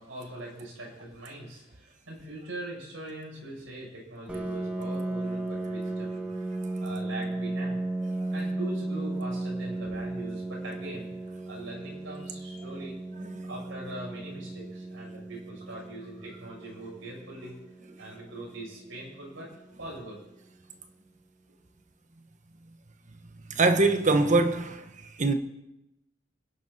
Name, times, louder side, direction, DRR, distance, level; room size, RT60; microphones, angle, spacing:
voice 1, 0.0-6.3 6.8-7.9 8.3-11.1 11.5-13.0 13.4-17.6 18.0-20.2, right 1 dB, 85° right, 7.7 m, -42 dB
Piano, 4.3-19.7, right 2 dB, 5° right, 2.0 m, -35 dB
voice 2, 23.5-25.3, right 3 dB, 40° right, 1.3 m, -24 dB
30.0 x 10.5 x 4.3 m
head